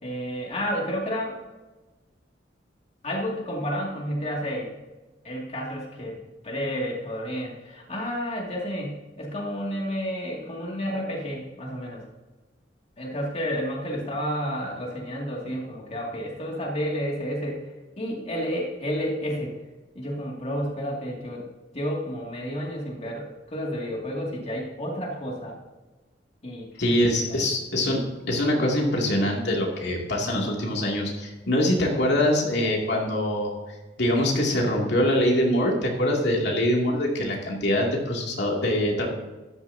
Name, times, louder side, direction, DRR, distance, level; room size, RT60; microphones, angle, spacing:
voice 1, 0.0-1.4 3.0-4.7 5.2-12.0 13.0-17.6 18.0-19.6 19.9-21.4 21.7-25.6 26.4-26.7 27.3-27.5, equal, 35° left, -2 dB, 2.4 m, -31 dB
voice 2, 26.8-33.5 34.0-39.1, left 1 dB, 65° left, -1 dB, 2.6 m, -24 dB
13.5 x 12.5 x 2.8 m, 1.2 s
head